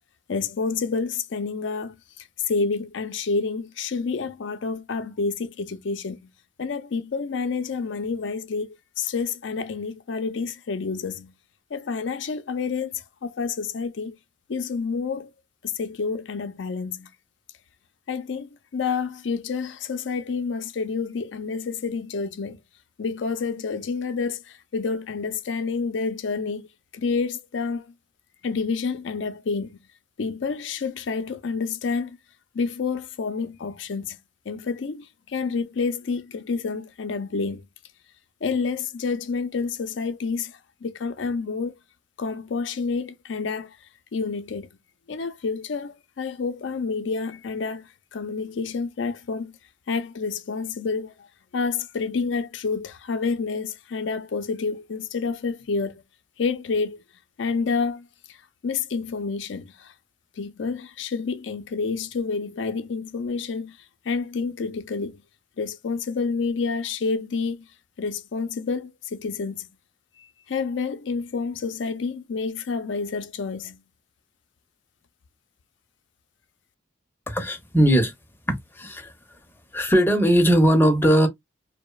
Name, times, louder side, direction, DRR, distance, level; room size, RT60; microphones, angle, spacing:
voice 1, 0.3-6.3 6.6-11.3 11.7-14.2 14.5-15.3 15.6-17.1 18.1-22.6 23.0-26.7 26.9-27.9 28.4-29.8 30.2-32.2 32.5-34.2 34.5-37.7 38.4-41.8 42.2-43.8 44.1-44.7 45.1-49.6 49.9-51.3 51.5-56.0 56.4-57.0 57.4-58.4 58.6-59.9 60.4-63.8 64.0-65.2 65.6-67.7 68.0-69.7 70.5-73.8, left 4 dB, 75° left, 0.5 m, -29 dB
voice 2, 77.3-78.1 78.5-79.1 79.7-81.3, equal, 10° left, 0.6 m, -19 dB
2.9 x 2.0 x 2.2 m
head